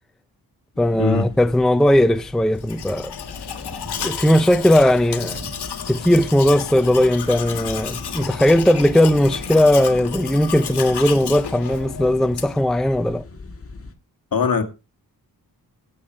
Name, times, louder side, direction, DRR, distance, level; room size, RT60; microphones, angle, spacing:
sound 1, 0.7-13.9, left 3 dB, 35° left, 2.0 m, -40 dB
voice 1, 0.8-3.1 4.0-5.4 5.9-13.2, left 1 dB, ahead, 0.5 m, -18 dB
sound 2, 1.7-12.7, right 3 dB, 35° right, 3.2 m, -46 dB
Domestic sounds home sounds, 2.6-12.7, left 8 dB, 85° left, 1.7 m, -32 dB
voice 2, 14.3-14.6, left 5 dB, 60° left, 2.4 m, -20 dB
16.0 x 6.7 x 4.6 m
wide cardioid pair, 125°, 39 cm